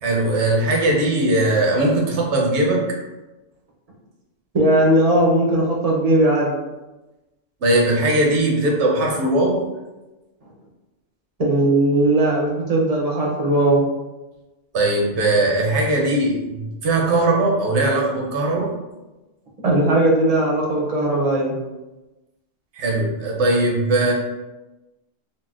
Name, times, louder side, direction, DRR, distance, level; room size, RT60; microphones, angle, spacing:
voice 1, 0.0-2.9 7.6-9.6 14.7-18.7 22.7-24.1, right 2 dB, 70° right, -1 dB, 0.9 m, -19 dB
voice 2, 4.5-6.5 11.4-13.8 19.6-21.5, right 1 dB, 40° right, -3 dB, 0.6 m, -18 dB
3.9 x 2.1 x 2.4 m, 1.1 s
omnidirectional pair, 1.2 m